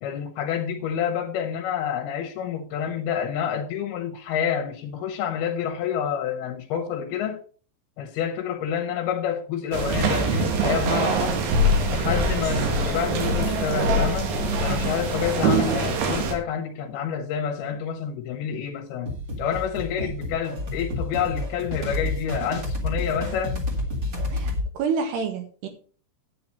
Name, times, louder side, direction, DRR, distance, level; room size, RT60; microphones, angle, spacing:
voice 1, 0.0-7.4 8.0-11.4 11.9-14.3 14.6-19.1 19.4-23.7, left 8 dB, 70° left, 2.8 m, -28 dB
sound 1, 9.7-16.3, right 1 dB, 85° right, 4.2 m, -23 dB
sound 2, 19.1-24.7, left 2 dB, 35° right, 1.8 m, -30 dB
voice 2, 24.3-25.7, right 6 dB, 70° right, 3.6 m, -29 dB
9.6 x 9.0 x 4.2 m
omnidirectional pair, 5.2 m